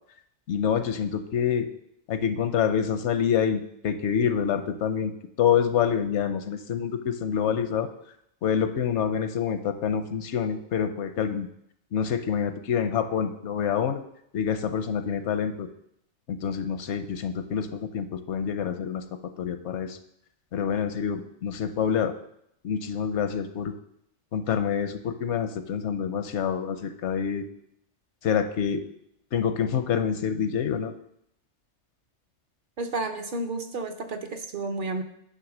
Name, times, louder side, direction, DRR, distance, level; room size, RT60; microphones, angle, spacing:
voice 1, 0.5-1.7 2.1-5.1 5.4-7.9 8.4-11.5 11.9-14.0 14.3-15.7 16.3-19.0 19.4-20.0 20.5-22.1 22.6-23.7 24.3-27.4 28.2-28.8 29.3-30.9, left 7 dB, 80° left, 9 dB, 1.0 m, -27 dB
voice 2, 32.8-35.0, right 3 dB, 55° right, 5 dB, 0.7 m, -31 dB
9.7 x 3.3 x 6.0 m, 0.74 s
omnidirectional pair, 1.2 m